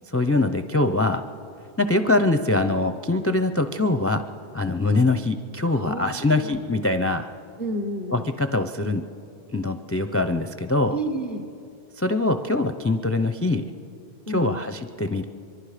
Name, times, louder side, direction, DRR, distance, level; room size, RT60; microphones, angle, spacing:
voice 1, 0.1-1.2 1.8-4.2 4.5-7.3 8.1-9.0 9.5-11.0 12.0-13.6 14.3-15.2, left 2 dB, 20° left, 9 dB, 0.4 m, -23 dB
voice 2, 5.7-6.6 7.6-8.3 10.9-11.5 14.3-14.6, right 1 dB, 55° right, 4 dB, 1.3 m, -31 dB
24.0 x 23.5 x 5.0 m, 2.6 s
omnidirectional pair, 1.0 m